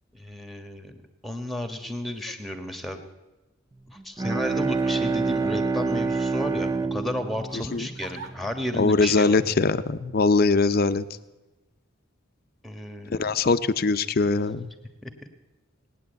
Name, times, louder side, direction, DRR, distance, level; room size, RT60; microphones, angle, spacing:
voice 1, 0.1-1.0 1.2-3.0 3.9-9.4 12.6-13.3 15.0-15.1, equal, ahead, 8 dB, 1.3 m, -33 dB
Crying sobbing, 2.0-2.4 3.0-3.1 4.1-6.3 7.5-8.3 9.0-9.3, right 4 dB, 85° right, 1.7 m, -46 dB
Bowed string instrument, 4.0-8.7, right 4 dB, 20° right, 0.4 m, -27 dB
voice 2, 8.8-11.0 13.2-14.7, left 3 dB, 50° left, 11 dB, 0.6 m, -22 dB
19.0 x 9.6 x 8.0 m, 1.1 s
head